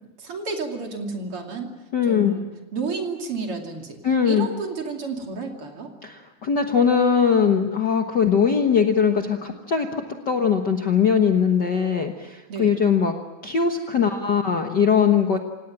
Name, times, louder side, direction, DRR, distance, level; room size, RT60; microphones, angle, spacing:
voice 1, 0.2-1.7 2.0-5.9 12.5-12.7, right 4 dB, 50° right, 3 dB, 3.4 m, -31 dB
voice 2, 1.9-2.3 4.0-4.5 6.0-13.1 13.4-15.4, left 6 dB, 45° left, 4 dB, 1.5 m, -21 dB
28.0 x 18.0 x 8.8 m, 1.1 s
omnidirectional pair, 3.4 m